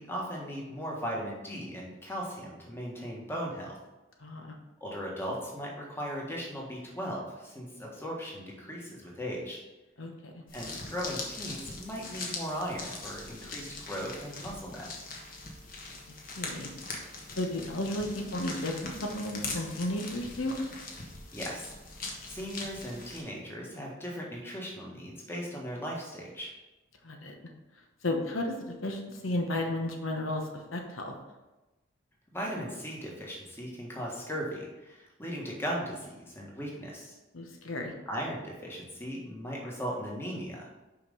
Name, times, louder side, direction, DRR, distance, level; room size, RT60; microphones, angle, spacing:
voice 1, 0.0-3.8 4.8-9.6 10.5-15.1 21.3-21.7 22.0-26.5 32.3-37.1 38.1-40.7, equal, 10° left, -3 dB, 1.5 m, -38 dB
voice 2, 4.2-4.5 10.0-10.4 16.4-16.7 17.3-20.6 27.0-27.3 28.0-31.1 37.3-37.9, left 1 dB, 90° left, 3 dB, 1.1 m, -33 dB
sound 1, 10.5-23.2, left 3 dB, 45° left, 1.3 m, -41 dB
5.8 x 5.2 x 5.3 m, 1.1 s
head